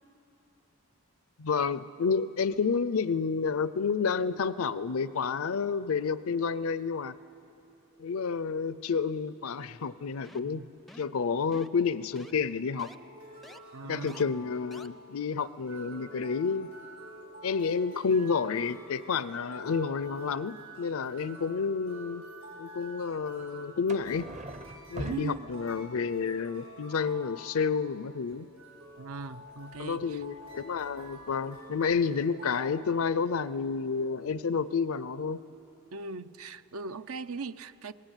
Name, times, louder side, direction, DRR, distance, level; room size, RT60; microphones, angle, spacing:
voice 1, 1.4-7.2 8.0-10.6 11.0-12.9 13.8-16.7 17.4-22.2 22.6-24.3 24.9-28.5 29.8-35.4, left 5 dB, 75° left, 0.5 m, -30 dB
sound 1, 10.2-10.6 10.9-11.2 11.5-11.8 12.2-12.3 12.8-13.0 13.4-13.6 14.1-14.2 14.7-14.9, left 1 dB, ahead, 0.5 m, -50 dB
sound 2, 12.9-32.7, equal, 90° right, 7.3 m, -49 dB
voice 2, 13.7-14.3 25.0-25.5 29.0-30.2 35.9-37.9, right 3 dB, 75° right, 0.7 m, -39 dB
sound 3, 23.9-26.0 28.9-32.1 33.9-34.0 34.3-34.4, right 1 dB, 30° right, 0.7 m, -45 dB
27.5 x 19.5 x 9.0 m
head